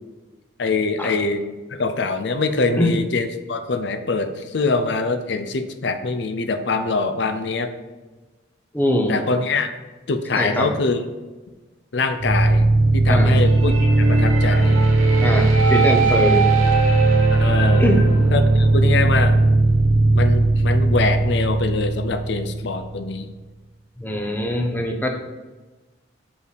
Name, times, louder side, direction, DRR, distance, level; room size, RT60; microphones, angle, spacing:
voice 1, 0.6-1.4 1.7-7.7 9.1-9.7 10.1-11.0 11.9-12.6 12.9-14.8 17.3-17.9 18.3-19.4 20.1-23.3, left 3 dB, 60° left, 9 dB, 0.5 m, -24 dB
voice 2, 8.7-9.2 10.3-10.7 13.1-13.3 15.2-16.5 17.8-18.2 24.0-25.1, left 1 dB, 10° left, 2 dB, 0.7 m, -22 dB
sound 1, 12.2-23.1, right 2 dB, 90° right, 1.1 m, -17 dB
5.3 x 4.8 x 5.0 m, 1.2 s
head